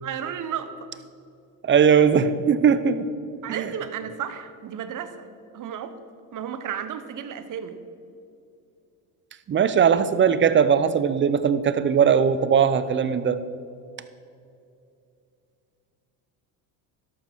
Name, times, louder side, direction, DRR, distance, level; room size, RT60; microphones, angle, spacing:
voice 1, 0.0-0.9 3.4-5.3 5.5-6.0 6.3-7.8, right 8 dB, 40° right, 11 dB, 1.1 m, -33 dB
voice 2, 1.6-3.1 3.5-3.7 9.5-13.4, right 7 dB, 25° right, 13 dB, 0.6 m, -19 dB
13.0 x 11.5 x 4.5 m, 2.6 s
supercardioid pair, 105°, 46 cm